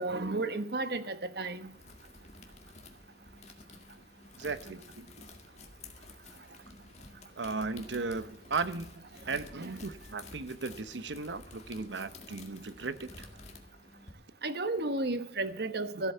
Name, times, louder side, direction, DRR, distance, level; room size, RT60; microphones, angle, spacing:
voice 1, 0.0-1.7 9.3-9.7 14.4-16.1, right 2 dB, 65° right, 1.2 m, -33 dB
sound 1, 1.5-14.1, left 3 dB, 40° left, 2.0 m, -51 dB
voice 2, 4.4-5.3 7.4-13.3, right 4 dB, 90° right, 1.0 m, -36 dB
14.5 x 8.5 x 6.8 m
head